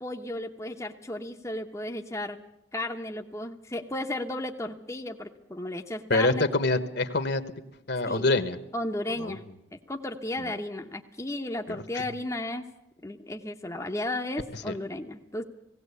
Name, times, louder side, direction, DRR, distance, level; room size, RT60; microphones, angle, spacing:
voice 1, 0.0-2.4 2.7-6.5 8.1-8.3 8.7-9.4 9.9-12.7 13.0-15.4, left 1 dB, 15° left, 2 dB, 0.9 m, -34 dB
voice 2, 6.1-7.4 7.9-8.6 9.2-9.4 10.4-10.5 11.7-12.0 14.5-14.7, left 2 dB, 55° left, 11 dB, 1.3 m, -26 dB
19.0 x 17.0 x 8.3 m, 0.87 s
head